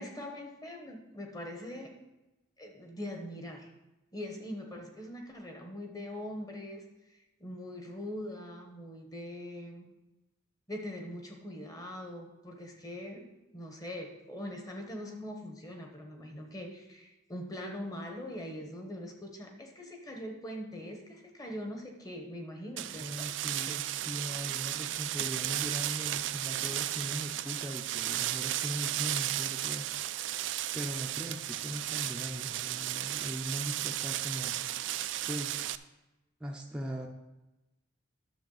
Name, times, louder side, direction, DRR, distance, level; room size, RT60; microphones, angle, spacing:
voice 1, 0.0-1.9 2.6-3.7 4.1-6.8 7.4-9.9 10.7-13.3 13.5-23.3 23.7-23.8, left 1 dB, 20° left, 2 dB, 1.1 m, -42 dB
sound 1, 22.8-35.8, right 13 dB, 60° right, 0.3 m, -34 dB
voice 2, 23.0-29.9 30.7-34.6 35.3-35.7 36.4-37.1, equal, 5° right, -1 dB, 0.6 m, -40 dB
10.5 x 6.9 x 4.0 m, 1.0 s
head